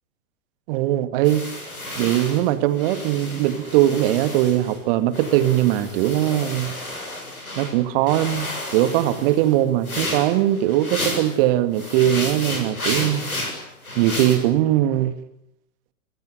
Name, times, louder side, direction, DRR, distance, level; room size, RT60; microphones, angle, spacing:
voice 1, 0.7-1.4 2.0-6.7 7.6-13.3 13.9-15.2, right 13 dB, 40° right, 11 dB, 2.3 m, -20 dB
sound 1, 1.2-4.8 5.1-7.7 8.1-11.4 11.7-14.4, left 1 dB, 85° left, 7.0 m, -32 dB
28.5 x 16.5 x 9.5 m, 0.81 s
figure-of-eight pair, 105°, 42 cm